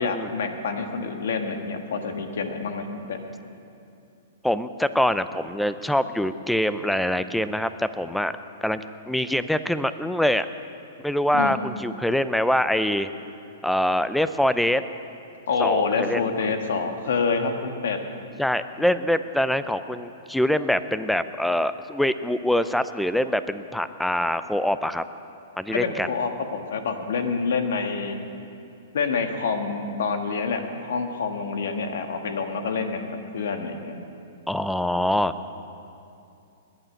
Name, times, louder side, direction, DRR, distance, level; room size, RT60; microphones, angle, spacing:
voice 1, 0.0-3.2 11.3-11.6 15.5-18.0 25.7-28.2 28.9-34.0, left 4 dB, 70° left, 6 dB, 1.5 m, -27 dB
voice 2, 4.4-8.3 8.6-10.5 11.0-13.1 13.6-14.8 15.6-16.2 18.4-25.0 25.6-26.1 34.5-35.3, left 1 dB, ahead, 12 dB, 0.5 m, -24 dB
20.5 x 8.9 x 6.5 m, 2.6 s
hypercardioid pair, 120°, 0 cm